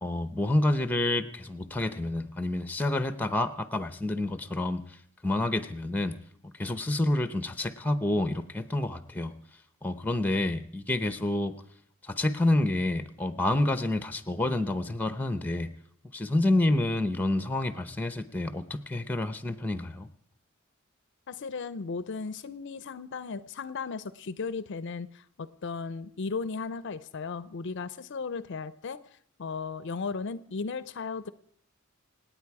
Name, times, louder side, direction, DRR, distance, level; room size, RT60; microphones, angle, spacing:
voice 1, 0.0-4.8 5.2-6.2 6.4-9.3 9.8-11.5 12.0-15.7 16.1-20.1, left 2 dB, 10° left, 12 dB, 0.7 m, -28 dB
voice 2, 21.3-29.0 29.4-31.3, left 4 dB, 55° left, 16 dB, 0.5 m, -36 dB
27.0 x 9.1 x 4.8 m, 0.65 s
head